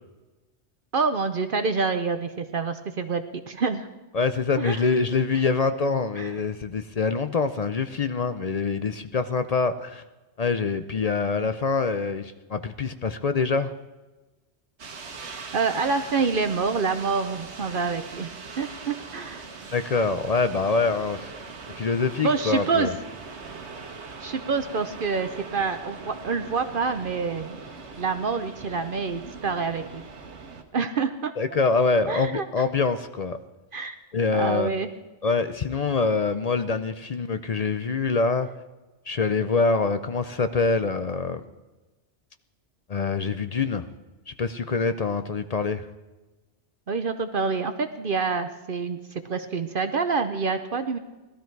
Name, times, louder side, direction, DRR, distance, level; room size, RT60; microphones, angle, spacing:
voice 1, 0.9-3.9 4.6-4.8 6.2-6.3 15.5-19.5 22.2-22.9 24.2-27.6 28.0-30.0 30.7-31.3 32.1-32.5 33.7-34.0 34.3-34.9 46.9-51.0, right 4 dB, 55° right, 9 dB, 0.8 m, -27 dB
voice 2, 4.1-10.0 10.4-13.7 19.7-21.3 21.8-22.9 31.4-33.4 34.1-34.7 35.2-38.5 39.1-41.4 42.9-43.9 44.3-45.9, left 4 dB, 45° left, 10 dB, 0.5 m, -25 dB
sound 1, 14.8-30.6, right 4 dB, 70° right, 1.5 m, -41 dB
18.5 x 12.5 x 4.6 m, 1.1 s
omnidirectional pair, 1.2 m